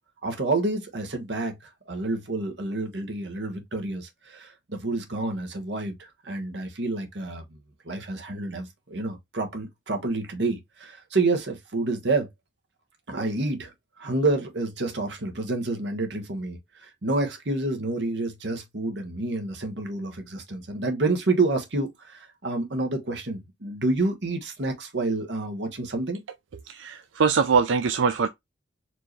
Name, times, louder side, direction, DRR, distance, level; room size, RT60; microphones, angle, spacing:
voice 1, 0.2-7.4 7.8-12.3 13.1-26.2, right 2 dB, 70° right, 1.2 m, -28 dB
voice 2, 26.6-28.3, right 5 dB, 90° right, 0.4 m, -22 dB
4.5 x 2.8 x 3.0 m
head